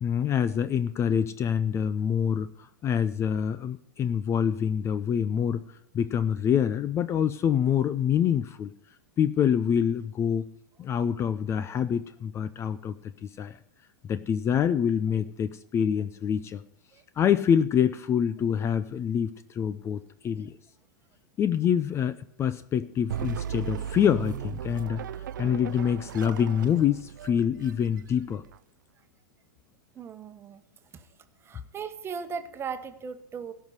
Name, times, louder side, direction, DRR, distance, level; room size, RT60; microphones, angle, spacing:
voice 1, 0.0-5.6 5.9-8.7 9.2-10.5 10.8-13.6 14.0-16.6 17.2-20.5 21.4-25.0 25.4-28.4, left 8 dB, 25° left, 14 dB, 0.5 m, -26 dB
sound 1, 23.1-28.6, right 9 dB, 70° right, 0.4 m, -37 dB
voice 2, 29.9-30.6 30.9-31.1 31.4-33.5, right 6 dB, 25° right, 9 dB, 1.2 m, -37 dB
16.5 x 5.7 x 8.0 m, 0.75 s
hypercardioid pair, 100°, 11 cm